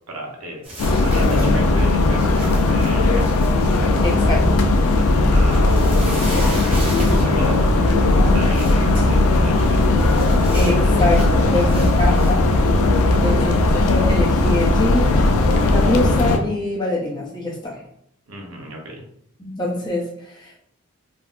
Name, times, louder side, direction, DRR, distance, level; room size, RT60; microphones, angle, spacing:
voice 1, 0.1-0.7 1.0-3.5 3.9-4.5 5.3-6.3 6.6-9.9 10.8-10.9 12.0-12.6 13.1-13.6 18.3-19.1, right 1 dB, 85° right, 0 dB, 0.7 m, -34 dB
sound 1, 0.6-12.3, right 1 dB, 25° right, 0.7 m, -37 dB
sound 2, 0.8-16.4, left 2 dB, 85° left, 0.4 m, -17 dB
voice 2, 4.0-4.4 10.5-12.5 13.1-17.8 19.4-20.6, left 2 dB, 20° left, -5 dB, 0.6 m, -24 dB
3.6 x 2.0 x 2.4 m, 0.73 s
head